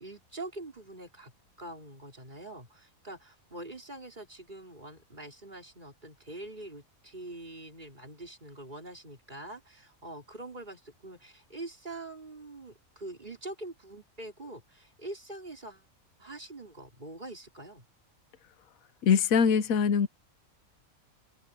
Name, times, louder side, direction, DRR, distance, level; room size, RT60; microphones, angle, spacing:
voice 1, 0.0-15.9 16.2-17.8, right 2 dB, 30° right, 4.4 m, -44 dB
voice 2, 19.0-20.1, left 6 dB, 75° left, 1.3 m, -23 dB
open air
omnidirectional pair, 1.5 m